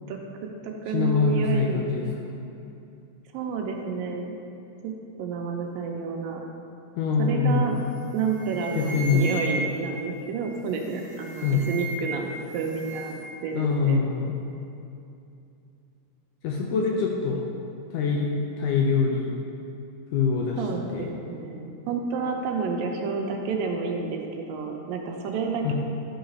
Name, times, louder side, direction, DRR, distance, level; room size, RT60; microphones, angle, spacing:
voice 1, 0.1-1.8 3.3-4.4 4.8-4.9 5.2-6.4 7.2-7.8 8.1-12.3 12.5-13.1 13.4-14.0 20.6-25.7, right 5 dB, 80° right, 2 dB, 2.3 m, -30 dB
voice 2, 0.9-2.1 7.0-7.8 8.7-9.3 11.4-11.7 13.5-14.3 16.4-17.4 17.9-18.3 18.6-19.4 20.1-20.6 20.9-21.1 25.6-25.7, left 5 dB, 80° left, 0 dB, 1.9 m, -24 dB
sound 1, 7.8-8.0 8.3-9.9 10.8-12.2 12.5-13.3, right 2 dB, 35° right, 2.5 m, -36 dB
11.5 x 3.9 x 5.2 m, 2.7 s
omnidirectional pair, 4.2 m